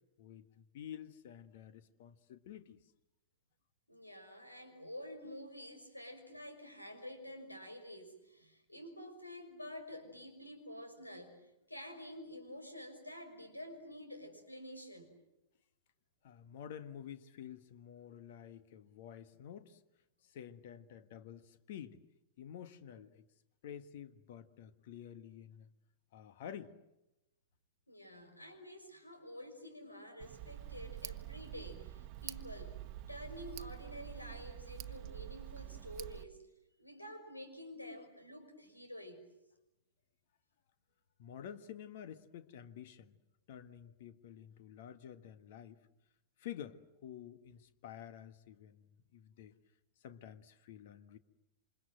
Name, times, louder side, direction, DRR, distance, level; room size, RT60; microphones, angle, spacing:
voice 1, 0.2-2.8 16.2-19.8 20.2-22.0 22.4-23.3 23.6-25.7 26.1-26.7 41.2-43.2 43.5-45.8 46.4-49.5 50.0-51.2, left 9 dB, 50° left, 1.6 m, -50 dB
voice 2, 3.9-15.1 27.9-32.8 33.1-36.4 36.8-39.2, left 1 dB, 90° left, 6.0 m, -49 dB
Tick, 30.2-36.2, right 14 dB, 40° right, 1.1 m, -47 dB
28.5 x 26.5 x 7.8 m
figure-of-eight pair, 100°, 0 cm